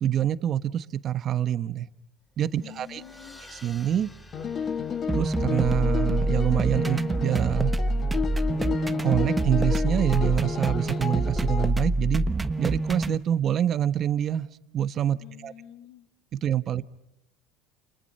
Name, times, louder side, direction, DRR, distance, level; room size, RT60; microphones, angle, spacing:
voice 1, 0.0-1.9 2.4-3.0 3.6-4.1 5.1-7.7 9.0-12.3 12.6-14.5 14.7-15.2 15.4-15.5 16.3-16.8, right 10 dB, 35° right, 14 dB, 1.1 m, -26 dB
sound 1, 2.3-9.4, left 1 dB, 10° left, 4.6 m, -52 dB
voice 2, 2.6-3.5 15.2-16.1 16.8-16.9, left 10 dB, 60° left, 8 dB, 2.7 m, -47 dB
sound 2, 4.3-11.7, left 6 dB, 30° left, 2.0 m, -32 dB
sound 3, 5.1-13.2, right 2 dB, 10° right, 1.1 m, -26 dB
30.0 x 30.0 x 5.5 m, 0.83 s
cardioid pair, 150°, 0 cm